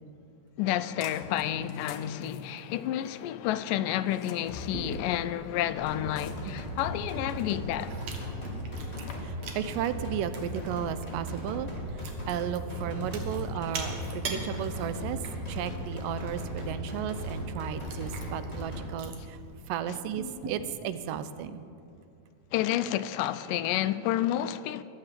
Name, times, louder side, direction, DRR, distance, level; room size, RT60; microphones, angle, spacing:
voice 1, 0.6-8.0 22.5-24.8, left 12 dB, 85° left, 2.2 m, -30 dB
sound 1, 1.0-1.4 1.7-3.2 4.1-4.8 6.2-6.7 7.4-7.5 8.6-9.1, left 8 dB, 65° left, 1.8 m, -45 dB
Chewing mastication, 4.7-20.5, right 4 dB, 55° right, 2.6 m, -45 dB
sound 2, 5.8-18.8, equal, 10° left, 4.1 m, -37 dB
voice 2, 9.2-11.7 11.9-15.2 15.5-19.4 19.7-21.6, right 9 dB, 85° right, 2.3 m, -34 dB
22.0 x 7.9 x 7.6 m
omnidirectional pair, 3.8 m